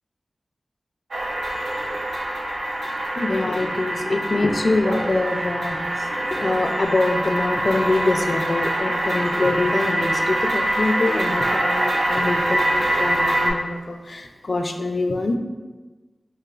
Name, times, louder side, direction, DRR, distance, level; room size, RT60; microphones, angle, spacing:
sound 1, 1.1-13.5, right 1 dB, 85° right, 0.5 m, -24 dB
voice 1, 3.2-15.4, left 2 dB, 60° left, 4 dB, 0.4 m, -24 dB
4.8 x 3.0 x 2.3 m, 1.3 s
cardioid pair, 40°, 0 cm